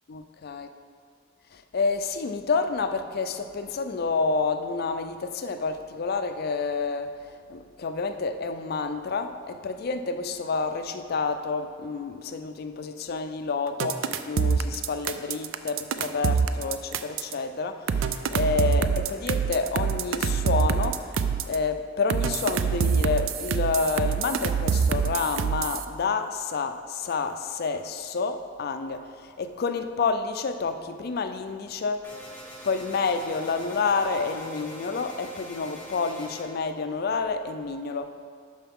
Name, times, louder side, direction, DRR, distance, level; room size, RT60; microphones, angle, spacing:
voice 1, 0.1-0.7 1.5-7.2 7.5-32.1 32.6-38.1, left 4 dB, 50° left, 9 dB, 0.4 m, -29 dB
sound 1, 13.8-17.3 17.9-21.6 22.1-25.8, right 6 dB, 80° right, 0.4 m, -25 dB
sound 2, 32.0-36.4, equal, 10° left, 1.2 m, -43 dB
11.5 x 4.6 x 3.6 m, 2.1 s
head